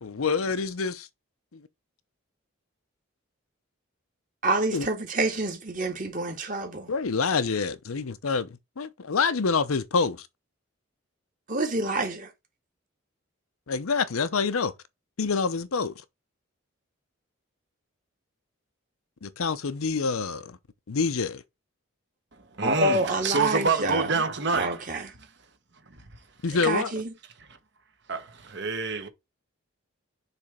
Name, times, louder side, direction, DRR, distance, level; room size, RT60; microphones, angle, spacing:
voice 1, 0.0-1.1 1.5-1.6 4.7-4.9 6.9-10.3 13.7-14.7 15.2-16.0 19.2-20.6 20.9-21.4 26.4-26.9, left 5 dB, 85° left, 0.7 m, -27 dB
voice 2, 4.4-6.9 11.5-12.3 22.6-24.1 24.5-25.1 26.6-27.1, right 2 dB, 40° right, 1.8 m, -27 dB
voice 3, 22.3-25.1 28.1-29.1, right 4 dB, 55° right, 1.2 m, -27 dB
6.9 x 3.4 x 4.9 m
head